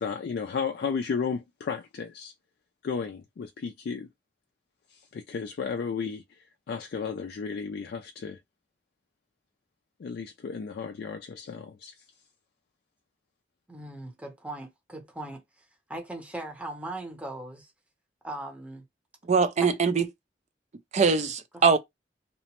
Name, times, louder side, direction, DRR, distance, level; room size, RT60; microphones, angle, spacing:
voice 1, 0.0-2.3 2.8-4.1 4.9-6.2 6.7-8.4 10.0-11.9, left 5 dB, 60° left, 0.3 m, -33 dB
voice 2, 13.7-15.4 15.9-17.7 18.2-18.8 19.6-19.7 21.5-21.6, right 1 dB, 10° right, 0.7 m, -39 dB
voice 3, 19.3-20.1 20.9-21.8, right 5 dB, 40° right, 0.4 m, -22 dB
2.9 x 2.1 x 2.9 m
head